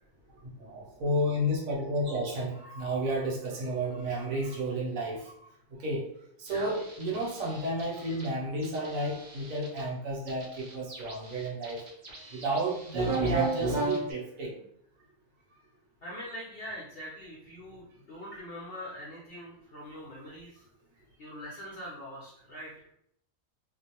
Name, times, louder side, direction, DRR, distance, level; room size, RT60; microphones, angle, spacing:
voice 1, 0.6-5.3 5.7-6.1 6.4-11.8 12.3-14.6, right 1 dB, 70° right, -2 dB, 1.0 m, -32 dB
voice 2, 6.5-6.8 16.0-20.7 21.2-22.9, equal, 60° left, -6 dB, 0.6 m, -43 dB
sound 1, 6.5-8.3 8.6-9.8 10.3-14.1, right 2 dB, 50° right, 0.6 m, -34 dB
2.5 x 2.0 x 2.8 m, 0.71 s
omnidirectional pair, 1.6 m